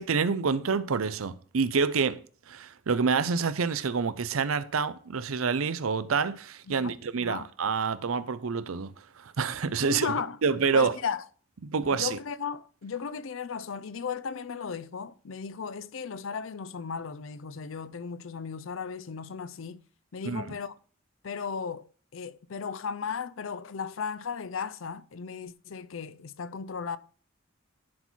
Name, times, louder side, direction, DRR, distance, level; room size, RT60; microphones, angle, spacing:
voice 1, 0.0-10.2 10.4-10.9 11.6-12.2 20.2-20.6, right 5 dB, 85° right, 0.6 m, -28 dB
voice 2, 6.7-7.5 9.8-10.4 10.7-11.2 11.9-19.8 20.1-20.7 21.2-21.8 22.1-27.0, left 6 dB, 70° left, 0.5 m, -36 dB
10.5 x 4.2 x 4.5 m
head